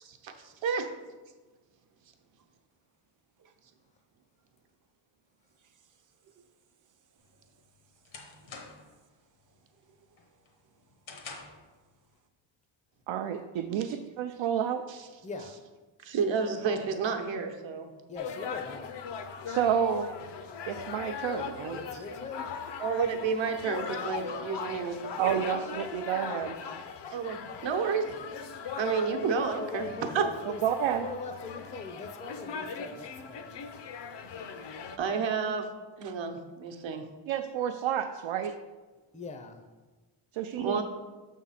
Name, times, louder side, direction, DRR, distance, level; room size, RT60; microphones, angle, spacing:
voice 1, 0.2-0.9 14.9-15.0 16.0-17.9 22.8-25.5 27.1-28.2 28.8-30.2 35.0-35.7 36.0-37.0 40.6-40.8, right 5 dB, 70° right, 5 dB, 0.9 m, -30 dB
voice 2, 5.6-6.5 9.7-10.2 20.7-20.8 21.3-21.4 24.9-25.0 32.9-33.0 36.0-36.2 38.5-38.6, right 6 dB, 45° right, 8 dB, 0.5 m, -60 dB
sound 1, 7.2-9.0 9.4-9.8 10.2-11.7, left 4 dB, 80° left, 1.2 m, -47 dB
voice 3, 13.1-14.8 19.5-20.1 20.7-21.8 25.2-26.6 30.6-31.1 37.3-38.5 40.3-40.8, right 9 dB, 85° right, 5 dB, 0.5 m, -30 dB
voice 4, 18.1-18.9 21.7-22.5 29.1-30.6 31.0-33.6 39.1-39.6, left 4 dB, 15° left, 6 dB, 0.4 m, -40 dB
sound 2, 18.2-35.0, left 6 dB, 65° left, 0.6 m, -39 dB
6.7 x 3.6 x 5.7 m, 1.3 s
wide cardioid pair, 140°, 46 cm